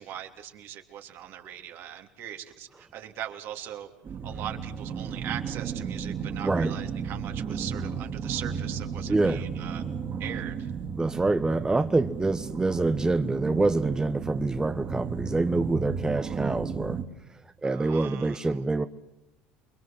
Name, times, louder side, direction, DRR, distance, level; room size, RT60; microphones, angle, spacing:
voice 1, 0.0-9.8 10.2-10.7 17.6-18.6, right 11 dB, 60° right, 5 dB, 3.2 m, -40 dB
sound 1, 4.0-17.0, right 6 dB, 45° right, 3.4 m, -34 dB
voice 2, 6.4-6.7 9.1-9.4 11.0-17.0 17.6-18.9, right 2 dB, 15° right, 9 dB, 1.2 m, -26 dB
28.5 x 22.5 x 7.7 m, 0.87 s
hypercardioid pair, 75°, 4 cm